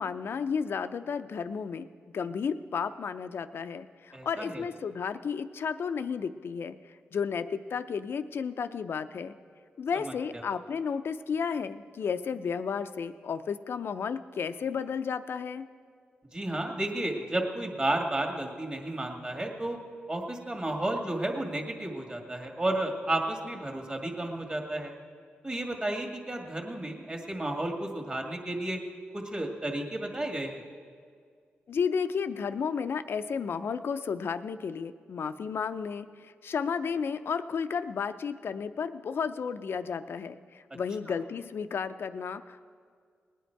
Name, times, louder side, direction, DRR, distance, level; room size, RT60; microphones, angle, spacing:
voice 1, 0.0-1.9 2.1-9.3 9.8-15.6 31.7-42.6, left 6 dB, 65° left, 11 dB, 0.5 m, -33 dB
voice 2, 4.1-4.6 10.0-10.1 16.3-19.8 20.1-24.9 25.4-28.8 29.1-30.6, right 1 dB, 25° right, 1 dB, 2.0 m, -32 dB
19.5 x 9.2 x 4.6 m, 2.1 s
cardioid pair, 60°, 4 cm